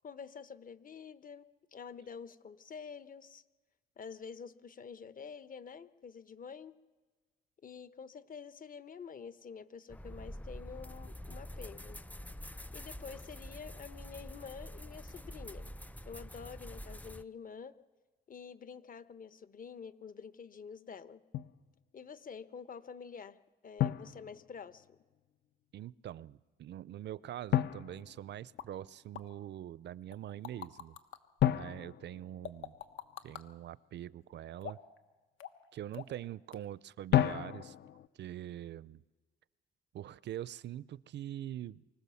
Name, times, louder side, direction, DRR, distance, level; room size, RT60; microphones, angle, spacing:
voice 1, 0.0-3.4 4.0-6.7 7.6-12.0 12.7-15.7 16.0-17.8 18.3-21.2 21.9-23.4 23.6-25.0, left 6 dB, 45° left, 13 dB, 1.0 m, -48 dB
sound 1, 9.9-17.2, equal, 10° left, 0.6 m, -46 dB
Drum, 21.3-21.6 23.8-24.9 27.5-28.9 31.4-33.1 37.1-38.1, left 12 dB, 60° left, 0.6 m, -33 dB
voice 2, 25.7-31.0 31.5-32.7 33.2-34.8 35.7-37.7 38.2-39.0 39.9-41.8, right 12 dB, 60° right, 20 dB, 0.5 m, -44 dB
sound 2, 28.6-28.7 29.1-29.3 30.1-31.2 32.4-33.5 34.6-35.0 35.4-35.7 35.9-36.2 36.5-36.6, left 9 dB, 80° left, 1.3 m, -44 dB
24.5 x 16.5 x 7.0 m, 1.3 s
cardioid pair, 90°, 20 cm